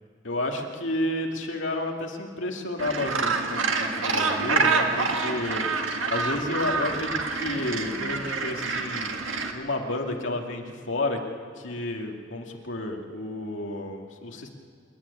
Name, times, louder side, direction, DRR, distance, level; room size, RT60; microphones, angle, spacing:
voice 1, 0.2-5.6 6.1-9.1 9.5-11.2 11.6-14.5, left 1 dB, 75° left, 1 dB, 2.4 m, -31 dB
Gull seagull, 2.8-9.5, right 4 dB, 85° right, 1.8 m, -27 dB
28.0 x 11.0 x 9.9 m, 2.2 s
head